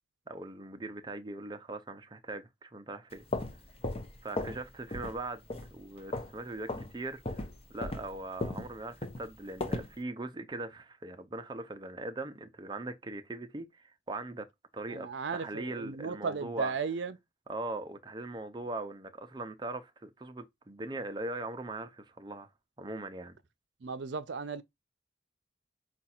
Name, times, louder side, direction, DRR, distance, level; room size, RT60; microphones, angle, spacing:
voice 1, 0.3-3.2 4.2-5.4 5.7-7.4 7.7-14.5 14.7-16.7 17.5-22.5 22.8-23.4, right 2 dB, 20° right, 0.5 m, -40 dB
sound 1, 3.1-4.6 4.9-5.2 5.5-6.4 6.7-6.9 7.2-9.9, left 2 dB, 30° left, 0.7 m, -36 dB
voice 2, 14.9-17.2 23.8-24.6, right 5 dB, 70° right, 0.5 m, -35 dB
5.0 x 2.3 x 4.3 m
head